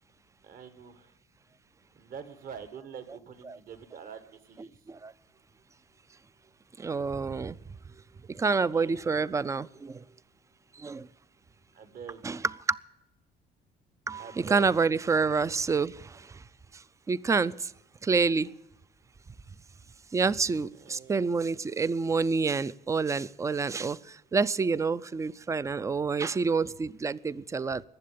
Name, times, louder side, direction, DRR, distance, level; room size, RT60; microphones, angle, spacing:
voice 1, 0.4-1.1 2.0-4.7 8.7-9.0 11.7-12.4 14.2-15.3 20.8-21.3, right 7 dB, 55° right, 1.9 m, -46 dB
voice 2, 6.8-7.6 8.3-10.0 10.8-11.1 12.2-12.8 14.1-16.4 16.7-16.8 17.1-17.7 18.0-18.5 20.1-27.8, right 4 dB, 20° right, 0.4 m, -28 dB
20.0 x 7.6 x 8.5 m
cardioid pair, 110°, 17 cm